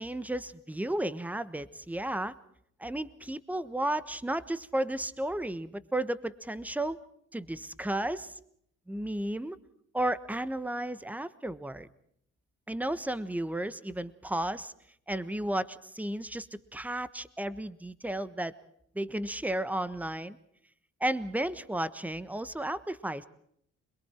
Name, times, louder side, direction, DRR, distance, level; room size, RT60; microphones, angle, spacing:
voice 1, 0.0-2.3 2.8-7.0 7.3-8.4 8.9-9.6 9.9-11.9 12.7-14.7 15.1-18.5 18.9-20.4 21.0-23.3, right 1 dB, 5° right, 15 dB, 1.3 m, -33 dB
26.5 x 22.0 x 4.5 m, 0.68 s
cardioid pair, 90°, 30 cm